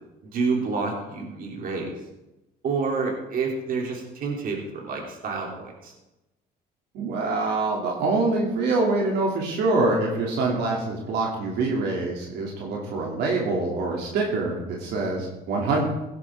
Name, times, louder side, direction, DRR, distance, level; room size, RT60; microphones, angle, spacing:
voice 1, 0.2-2.0 2.6-5.9, right 4 dB, 55° right, 0 dB, 3.2 m, -28 dB
voice 2, 6.9-15.8, right 3 dB, 80° right, -2 dB, 2.9 m, -25 dB
17.0 x 11.0 x 3.7 m, 0.97 s
cardioid pair, 110°, 17 cm